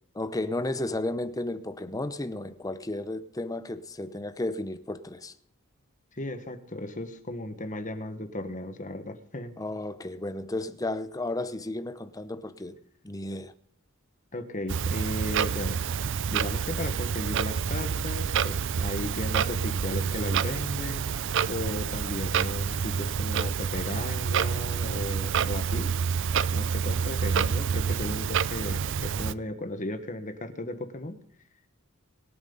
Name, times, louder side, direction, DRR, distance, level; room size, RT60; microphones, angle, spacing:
voice 1, 0.2-5.3 9.6-12.8 13.0-13.5, left 2 dB, 15° left, 0.8 m, -33 dB
voice 2, 6.1-9.5 14.3-15.8 16.3-25.9 26.5-31.2, left 1 dB, 35° left, 1.5 m, -35 dB
Clock, 14.7-29.3, right 7 dB, 60° right, 0.5 m, -28 dB
24.5 x 9.2 x 4.0 m
head